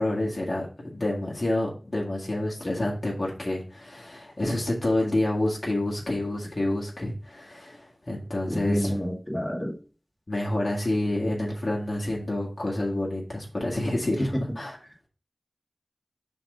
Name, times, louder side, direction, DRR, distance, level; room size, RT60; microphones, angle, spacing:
voice 1, 0.0-9.0 10.3-14.8, left 1 dB, 55° left, -4 dB, 1.7 m, -28 dB
voice 2, 8.5-9.7, equal, 15° left, 0 dB, 2.2 m, -28 dB
5.7 x 3.7 x 5.4 m, 0.38 s
wide cardioid pair, 45°, 0 cm